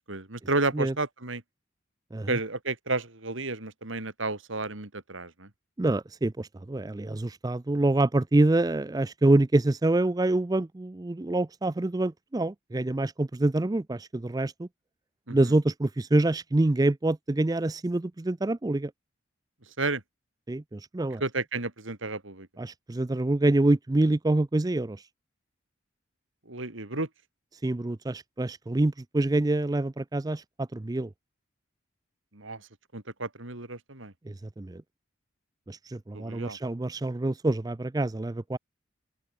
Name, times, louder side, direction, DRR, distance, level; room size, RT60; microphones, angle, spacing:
voice 1, 0.1-1.4 2.3-5.5 15.3-15.5 19.8-20.0 21.2-22.5 26.4-27.1 32.3-32.7 32.9-34.1 36.1-36.6, right 3 dB, 75° right, 3.3 m, -32 dB
voice 2, 5.8-14.7 15.3-18.9 20.5-21.2 22.6-25.0 27.6-31.1 34.3-34.8 35.7-38.6, right 2 dB, 20° right, 0.4 m, -26 dB
open air
head